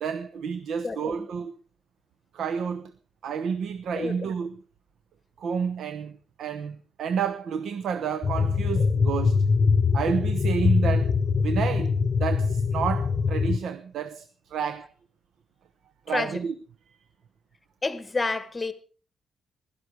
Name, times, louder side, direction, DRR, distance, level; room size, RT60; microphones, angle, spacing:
voice 1, 0.0-1.5 2.3-2.9 3.2-4.6 5.4-9.4 9.9-11.1 11.4-14.9 16.1-16.5, right 7 dB, 65° right, 0.8 m, -30 dB
voice 2, 0.8-1.3 3.9-4.1 16.1-16.4 17.8-18.7, left 3 dB, 15° left, 1.1 m, -29 dB
sound 1, 8.2-13.6, left 5 dB, 35° left, 0.6 m, -23 dB
16.5 x 12.5 x 4.7 m
wide cardioid pair, 180°, 0 cm